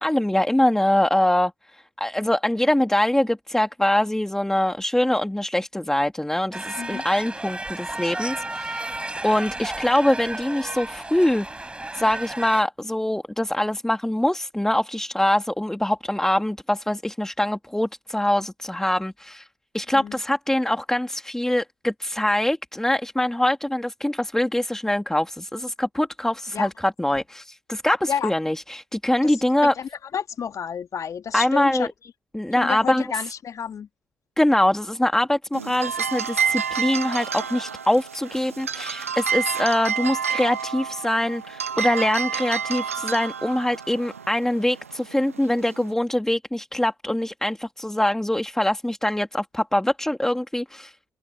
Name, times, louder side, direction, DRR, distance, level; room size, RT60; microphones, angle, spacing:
voice 1, 0.0-9.0 9.2-11.7 11.9-19.5 19.7-29.7 31.3-31.9 32.3-33.0 34.4-50.9, left 1 dB, 5° left, 2.7 m, -23 dB
sound 1, 6.5-12.6, right 2 dB, 15° right, 4.8 m, -33 dB
voice 2, 6.8-7.1 19.9-20.2 26.5-26.7 28.1-28.3 29.2-29.4 29.6-31.9 32.6-33.9, left 7 dB, 45° left, 2.0 m, -30 dB
sound 2, 35.5-45.9, right 7 dB, 90° right, 0.9 m, -29 dB
open air
figure-of-eight pair, 45°, 7 cm